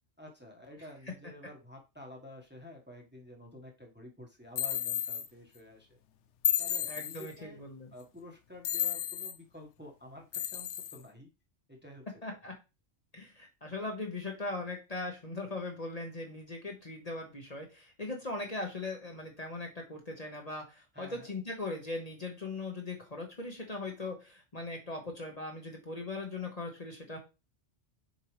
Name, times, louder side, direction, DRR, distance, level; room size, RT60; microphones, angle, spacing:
voice 1, 0.2-6.0 6.6-7.6 7.9-11.3 11.7-12.3 20.9-21.3, left 1 dB, 10° right, 0 dB, 1.2 m, -50 dB
sound 1, 4.6-5.3 6.4-7.3 8.6-9.4 10.3-11.0, left 10 dB, 80° left, 0.9 m, -32 dB
voice 2, 6.9-7.9 12.2-12.5 13.1-27.2, left 2 dB, 35° left, 1 dB, 1.2 m, -39 dB
6.9 x 4.6 x 3.2 m, 0.27 s
omnidirectional pair, 1.2 m